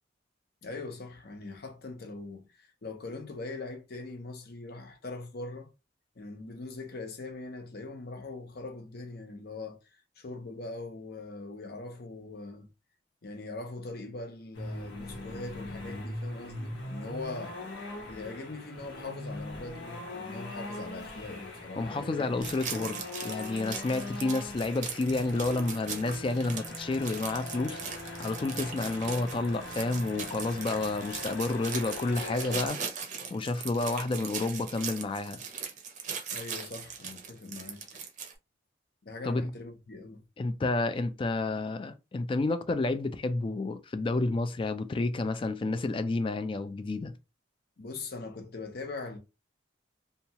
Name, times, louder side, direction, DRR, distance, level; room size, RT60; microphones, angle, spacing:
voice 1, 0.6-5.7 6.2-9.8 10.2-12.7 13.2-17.6 18.0-23.0 36.3-37.8 39.0-40.2 47.8-49.2, left 3 dB, 55° left, 0.7 m, -41 dB
sound 1, 14.5-32.7, left 2 dB, 85° left, 1.1 m, -41 dB
voice 2, 21.8-27.8 28.2-32.8 33.3-35.4 39.2-39.4 40.4-47.1, left 2 dB, 25° left, 0.3 m, -30 dB
sound 2, 22.4-38.3, right 6 dB, 40° right, 0.6 m, -39 dB
2.8 x 2.3 x 2.8 m
head